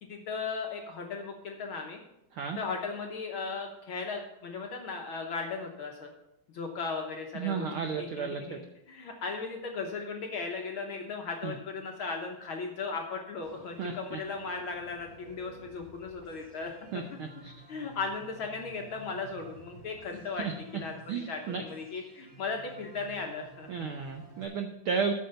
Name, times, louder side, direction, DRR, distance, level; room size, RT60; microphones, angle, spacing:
voice 1, 0.0-2.0 2.6-6.1 6.5-17.0 17.7-20.5 20.7-23.8, left 4 dB, 60° left, 2 dB, 1.4 m, -37 dB
voice 2, 7.3-8.6 11.4-11.5 13.8-14.2 16.9-17.5 20.4-20.8 21.1-21.6 23.7-25.1, right 5 dB, 75° right, 5 dB, 1.2 m, -33 dB
sound 1, 13.4-24.4, right 3 dB, 30° right, 3.4 m, -53 dB
9.1 x 6.6 x 6.7 m, 0.86 s
omnidirectional pair, 3.3 m